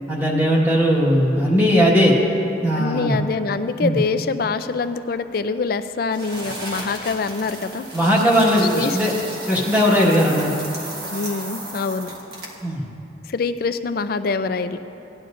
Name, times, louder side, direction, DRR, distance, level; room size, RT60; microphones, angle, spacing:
voice 1, 0.1-2.1 2.6-3.1 3.8-4.0 7.9-9.1 9.5-10.6 12.6-12.8, equal, 10° right, -5 dB, 1.5 m, -18 dB
voice 2, 2.7-7.9 8.6-9.0 11.1-12.1 13.2-14.8, left 4 dB, 55° left, 10 dB, 0.4 m, -25 dB
sound 1, 6.1-12.7, right 1 dB, 60° right, 1.4 m, -34 dB
17.0 x 11.0 x 2.5 m, 2.9 s
head